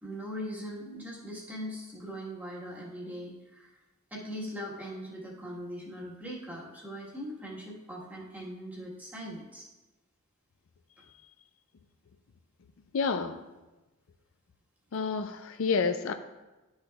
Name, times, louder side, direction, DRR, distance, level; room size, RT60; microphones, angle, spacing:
voice 1, 0.0-3.7 4.1-9.7, equal, 10° right, -5 dB, 1.4 m, -40 dB
voice 2, 12.9-13.4 14.9-16.1, left 5 dB, 65° left, 9 dB, 0.4 m, -29 dB
12.0 x 6.4 x 2.3 m, 1.1 s
head